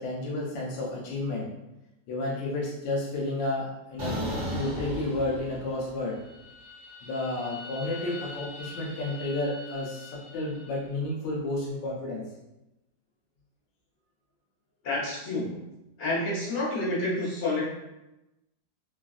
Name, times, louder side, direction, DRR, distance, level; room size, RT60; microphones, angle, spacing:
voice 1, 0.0-1.5 2.1-4.2 4.5-6.2 7.0-12.2, left 2 dB, 80° left, -3 dB, 1.3 m, -31 dB
sound 1, 4.0-5.9 6.3-10.6, equal, 60° right, 1.2 m, -38 dB
voice 2, 14.8-15.6 16.0-17.7, left 2 dB, 45° left, -7 dB, 1.1 m, -29 dB
3.3 x 2.3 x 2.3 m, 0.95 s
omnidirectional pair, 2.1 m